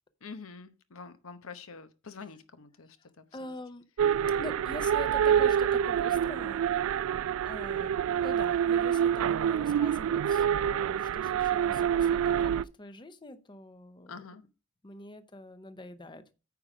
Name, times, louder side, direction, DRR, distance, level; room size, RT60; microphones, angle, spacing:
voice 1, 0.2-3.6 14.1-14.4, left 5 dB, 80° left, 0.9 m, -46 dB
voice 2, 3.0-3.8 4.4-6.7 7.4-7.9 8.2-14.2 14.8-16.3, left 2 dB, 25° left, 0.6 m, -44 dB
sound 1, 4.0-12.6, right 9 dB, 80° right, 0.3 m, -27 dB
9.4 x 5.0 x 4.9 m
head